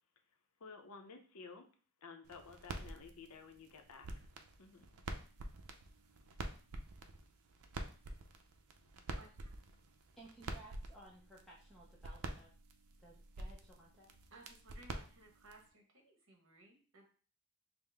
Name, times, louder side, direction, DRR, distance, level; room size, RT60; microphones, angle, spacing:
voice 1, 0.6-1.7 2.0-4.3 4.6-4.9, left 5 dB, 80° left, 6 dB, 0.6 m, -54 dB
sound 1, 2.3-15.7, right 2 dB, 80° right, 0.5 m, -48 dB
voice 2, 9.1-9.5 14.3-17.1, right 2 dB, 60° right, 2 dB, 1.0 m, -60 dB
voice 3, 10.2-12.5 13.0-14.1, right 2 dB, ahead, -5 dB, 0.6 m, -58 dB
5.4 x 2.0 x 3.4 m, 0.41 s
head